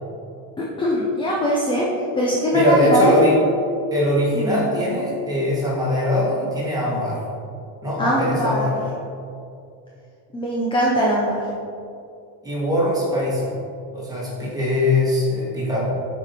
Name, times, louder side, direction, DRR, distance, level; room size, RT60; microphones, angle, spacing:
voice 1, 0.6-1.9 2.1-3.2 4.3-4.7 8.0-8.7 10.3-11.4, equal, 15° left, -4 dB, 0.3 m, -21 dB
voice 2, 2.5-3.4 3.9-7.2 7.8-8.7 12.4-13.5 13.9-15.9, left 1 dB, 10° right, -7 dB, 1.6 m, -21 dB
6.8 x 4.4 x 4.2 m, 2.5 s
cardioid pair, 160°, 46 cm